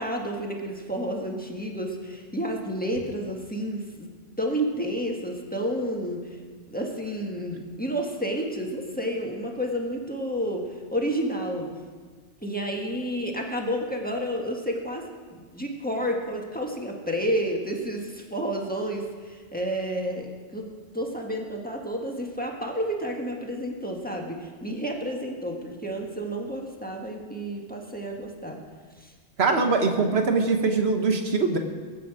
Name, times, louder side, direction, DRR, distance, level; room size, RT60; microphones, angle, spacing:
voice 1, 0.0-4.1 4.4-6.4 6.7-10.6 10.9-11.7 12.4-15.0 15.3-20.7 20.9-28.6 29.0-29.1, equal, 5° left, 0 dB, 1.6 m, -30 dB
voice 2, 29.4-31.6, right 4 dB, 60° right, 5 dB, 1.5 m, -22 dB
20.5 x 8.6 x 4.9 m, 1.5 s
omnidirectional pair, 1.2 m